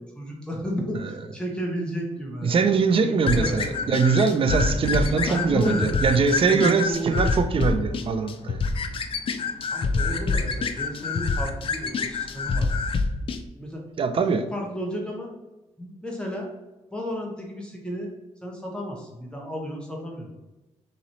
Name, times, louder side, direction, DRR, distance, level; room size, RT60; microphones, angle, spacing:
voice 1, 0.0-2.6 3.0-3.9 5.1-7.3 9.7-12.8 13.6-13.8 14.2-15.3 15.8-16.5 16.9-18.1 18.4-20.3, equal, 10° left, -2 dB, 0.8 m, -33 dB
voice 2, 2.4-8.6 14.0-14.4, right 5 dB, 50° right, 9 dB, 0.4 m, -22 dB
sound 1, 3.3-13.4, left 4 dB, 50° left, 0.4 m, -27 dB
3.9 x 3.1 x 4.1 m, 1.1 s
wide cardioid pair, 130°, 12 cm